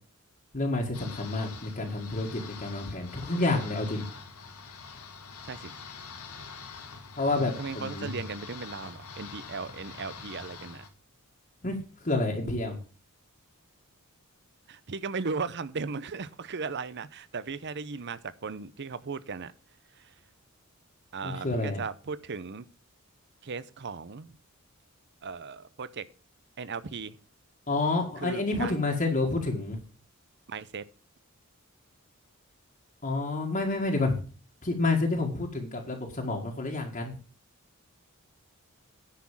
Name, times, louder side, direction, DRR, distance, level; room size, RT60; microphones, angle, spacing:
voice 1, 0.5-4.0 7.2-8.2 11.6-12.8 21.2-21.8 27.7-29.8 33.0-34.2 34.6-37.2, left 2 dB, 35° left, 1.8 m, -29 dB
sound 1, 0.9-10.9, left 5 dB, 80° left, 1.8 m, -45 dB
voice 2, 7.6-10.8 14.7-19.5 19.9-20.1 21.1-22.6 23.4-24.3 25.2-26.1 26.6-27.2 28.2-28.8 30.5-30.8, right 4 dB, 50° right, 0.7 m, -37 dB
10.0 x 6.1 x 7.3 m
head